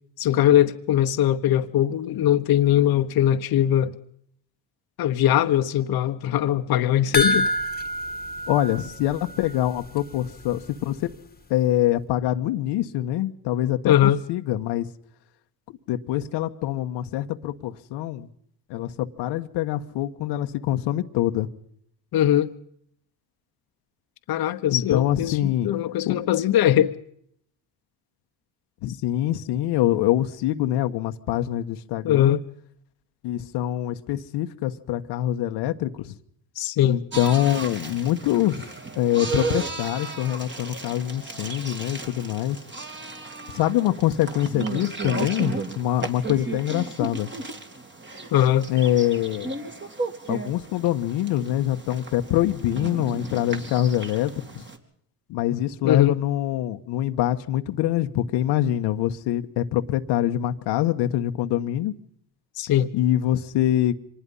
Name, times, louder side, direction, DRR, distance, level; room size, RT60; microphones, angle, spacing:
voice 1, 0.2-4.0 5.0-7.5 13.8-14.2 22.1-22.5 24.3-26.9 32.0-32.4 36.6-37.0 48.3-48.7 55.8-56.2 62.6-62.9, left 11 dB, 65° left, 1.2 m, -21 dB
sound 1, 7.1-9.7 10.0-10.1 10.5-10.6, equal, 25° left, 1.6 m, -27 dB
voice 2, 8.5-11.1 11.5-14.9 15.9-18.3 18.7-21.5 24.7-25.7 26.1-26.2 28.8-32.4 33.2-36.1 36.8-38.7 38.9-42.6 43.5-47.3 48.7-49.5 50.3-54.6 55.3-61.9 62.9-63.9, left 13 dB, 90° left, 1.3 m, -24 dB
Sheep Norway RF, 37.1-54.8, right 3 dB, 30° right, 3.0 m, -34 dB
25.5 x 20.0 x 5.5 m
cardioid pair, 105°, 40 cm